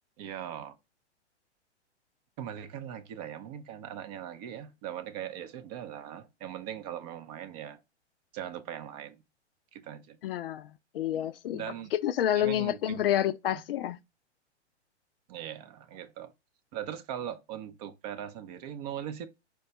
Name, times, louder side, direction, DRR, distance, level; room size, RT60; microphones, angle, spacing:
voice 1, 0.2-0.8 2.4-7.8 8.3-9.2 9.7-10.2 11.5-11.9 12.3-13.1 13.5-13.6 15.3-16.3 16.7-19.3, right 10 dB, 35° right, 0.6 m, -40 dB
voice 2, 10.2-10.7 10.9-11.6 12.0-14.0, left 11 dB, 55° left, 0.4 m, -28 dB
4.6 x 2.2 x 3.9 m
hypercardioid pair, 115°, 35 cm